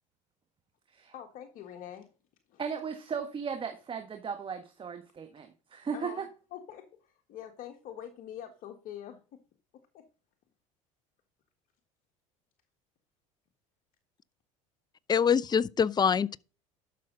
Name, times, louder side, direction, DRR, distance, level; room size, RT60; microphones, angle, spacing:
voice 1, 1.1-2.1 2.5-2.6 5.9-9.4 9.9-10.1, left 10 dB, 55° left, 1.6 m, -45 dB
voice 2, 2.6-6.3, right 6 dB, 30° right, 1.5 m, -36 dB
voice 3, 15.1-16.4, left 7 dB, 25° left, 0.5 m, -24 dB
12.0 x 6.5 x 3.9 m
hypercardioid pair, 75°, 17 cm